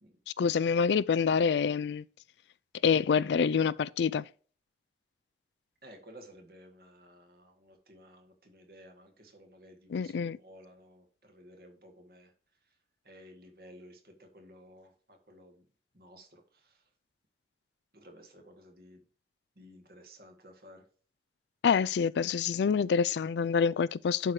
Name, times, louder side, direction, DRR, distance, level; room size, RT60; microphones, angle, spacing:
voice 1, 0.4-2.0 2.8-4.2 9.9-10.4 21.6-24.3, left 6 dB, 80° left, 0.3 m, -26 dB
voice 2, 5.8-12.3 13.1-15.6 15.9-16.4 17.9-19.0 19.6-20.8, equal, 55° right, 1.9 m, -54 dB
11.0 x 4.8 x 2.8 m
head